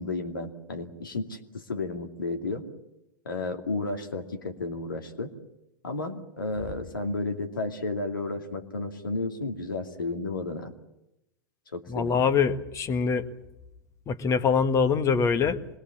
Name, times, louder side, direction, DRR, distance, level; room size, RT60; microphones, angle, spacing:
voice 1, 0.0-2.6 3.2-5.3 5.8-10.7 11.7-12.2, left 3 dB, 75° left, 4 dB, 2.5 m, -32 dB
voice 2, 11.9-13.3 14.1-15.6, left 6 dB, 25° left, 11 dB, 1.6 m, -24 dB
26.0 x 21.0 x 7.3 m, 0.88 s
figure-of-eight pair, 90°, 11 cm